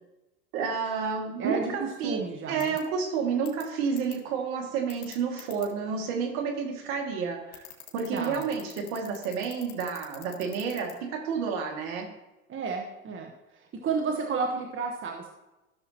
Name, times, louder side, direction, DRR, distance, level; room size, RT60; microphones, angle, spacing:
voice 1, 0.5-7.7 7.9-12.1, right 6 dB, 65° right, 3 dB, 2.2 m, -30 dB
voice 2, 1.4-2.7 8.1-8.4 12.5-13.3 13.8-15.3, right 5 dB, 30° right, 2 dB, 1.2 m, -31 dB
sound 1, 2.6-2.8 3.5-3.6 4.0-4.1 4.9-5.7 7.5-10.9, left 13 dB, 80° left, 2.2 m, -44 dB
14.5 x 6.8 x 2.9 m, 1.0 s
hypercardioid pair, 95°, 43 cm